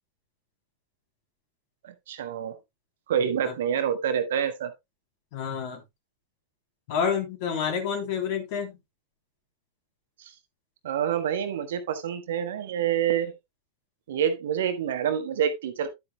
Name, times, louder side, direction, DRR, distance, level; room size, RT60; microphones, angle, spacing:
voice 1, 1.8-2.5 3.1-4.7 10.2-10.3 10.8-13.3 14.1-15.9, right 8 dB, 60° right, 1.3 m, -27 dB
voice 2, 5.3-5.8 6.9-8.8, left 7 dB, 50° left, 3.3 m, -28 dB
11.5 x 8.3 x 2.2 m
figure-of-eight pair, 90°, 0 cm